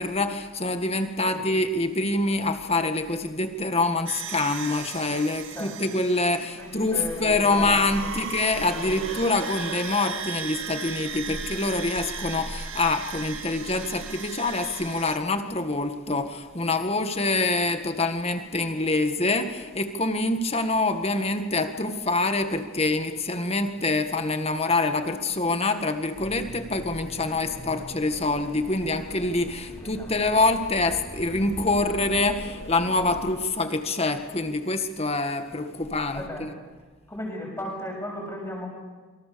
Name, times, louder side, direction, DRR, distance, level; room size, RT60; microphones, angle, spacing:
voice 1, 0.0-36.6, left 2 dB, 30° left, 7 dB, 1.8 m, -25 dB
sound 1, 4.1-15.2, right 5 dB, 60° right, 2.3 m, -36 dB
voice 2, 5.5-5.9 6.6-8.3 8.7-9.2 27.5-27.6 29.8-30.1 36.1-36.5 37.1-38.7, left 1 dB, 10° left, 0 dB, 7.3 m, -36 dB
sound 2, 26.1-33.4, equal, 55° left, 3.5 m, -42 dB
27.5 x 26.0 x 7.0 m, 1.3 s
head